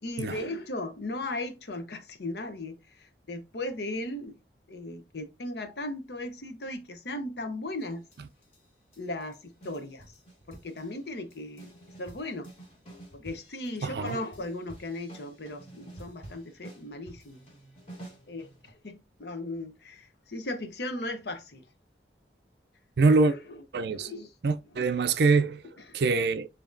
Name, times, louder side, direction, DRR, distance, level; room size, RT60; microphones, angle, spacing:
voice 1, 0.0-2.8 3.3-4.4 4.7-8.0 9.0-10.1 10.5-11.7 12.0-12.5 13.1-17.4 18.3-21.6 23.3-23.6 23.9-24.3 25.8-26.0, left 1 dB, 65° left, 0.8 m, -37 dB
sound 1, 8.1-8.6 8.9-9.4 9.6-11.0 11.3-18.7, right 1 dB, 35° left, 2.0 m, -49 dB
voice 2, 13.8-14.2 23.0-23.3 23.7-24.1 24.4-25.6 25.9-26.5, right 4 dB, 65° right, 0.4 m, -24 dB
7.1 x 2.8 x 2.6 m
head